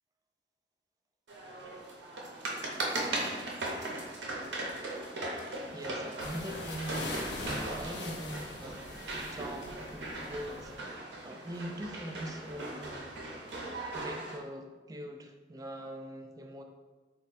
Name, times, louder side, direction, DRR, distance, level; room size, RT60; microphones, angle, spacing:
sound 1, 1.3-14.4, right 2 dB, 85° right, 0.6 m, -39 dB
voice 1, 5.7-8.8 9.1-13.2 13.9-16.6, right 1 dB, 20° right, 3 dB, 0.3 m, -42 dB
sound 2, 6.2-10.8, left 2 dB, 75° left, 0.5 m, -41 dB
3.5 x 2.1 x 4.0 m, 1.3 s
head